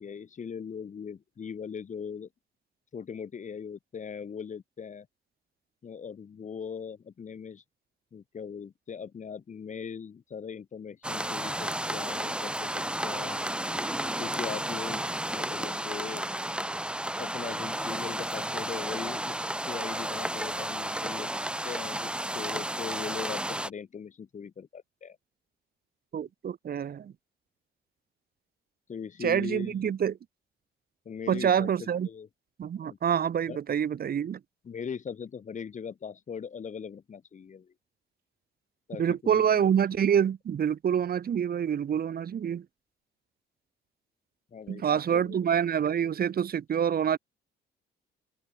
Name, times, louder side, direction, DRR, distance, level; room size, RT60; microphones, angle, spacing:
voice 1, 0.0-2.3 2.9-5.1 5.8-7.6 8.1-13.4 14.2-16.3 17.2-21.3 21.6-25.2 28.9-29.9 31.0-32.3 32.8-33.0 33.5-33.6 34.6-37.7 38.9-40.1 44.5-45.5, left 6 dB, 40° left, 1.0 m, -40 dB
sound 1, 11.0-23.7, right 1 dB, 5° right, 1.3 m, -32 dB
voice 2, 26.1-27.1 29.2-30.2 31.3-32.1 32.6-34.4 39.0-42.6 44.7-47.2, right 8 dB, 50° right, 1.1 m, -26 dB
open air
cardioid pair, 90°, 20 cm